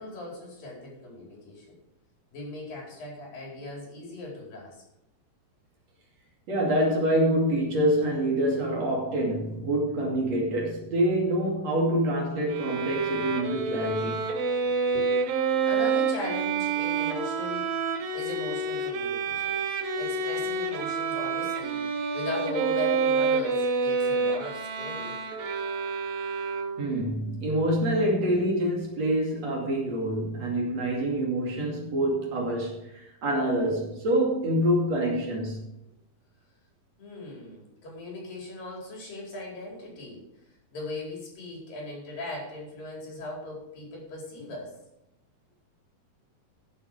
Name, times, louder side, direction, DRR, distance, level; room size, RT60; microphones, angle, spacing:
voice 1, 0.0-1.8 2.3-4.8 8.8-9.0 9.5-9.6 10.1-10.3 10.8-10.9 14.6-15.1 15.5-25.2 37.0-40.2 40.7-44.7, left 2 dB, 75° left, 6.5 m, -39 dB
voice 2, 6.5-14.2 26.8-35.6, right 1 dB, 50° right, 3.6 m, -26 dB
Bowed string instrument, 12.5-27.0, right 4 dB, 85° right, 3.1 m, -28 dB
14.5 x 8.1 x 4.9 m
omnidirectional pair, 4.0 m